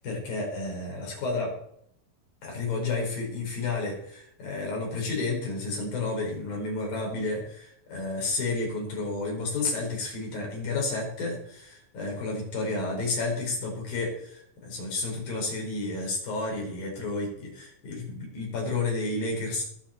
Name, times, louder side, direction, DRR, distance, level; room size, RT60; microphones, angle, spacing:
voice 1, 0.0-1.5 2.4-19.6, left 3 dB, 80° left, -1 dB, 6.6 m, -31 dB
21.5 x 8.2 x 4.5 m, 0.72 s
omnidirectional pair, 4.1 m